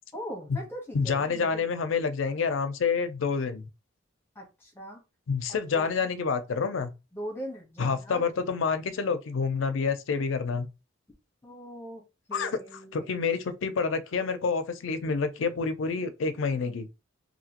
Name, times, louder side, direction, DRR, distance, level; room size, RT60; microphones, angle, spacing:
voice 1, 0.1-1.7 4.3-5.0 5.5-6.0 7.1-8.3 11.4-12.0 12.3-13.2, equal, 10° left, 0.9 m, -40 dB
voice 2, 0.9-3.7 5.3-6.9 7.8-10.7 12.3-12.6 12.9-16.9, left 5 dB, 75° left, 0.5 m, -28 dB
2.8 x 2.7 x 2.8 m
head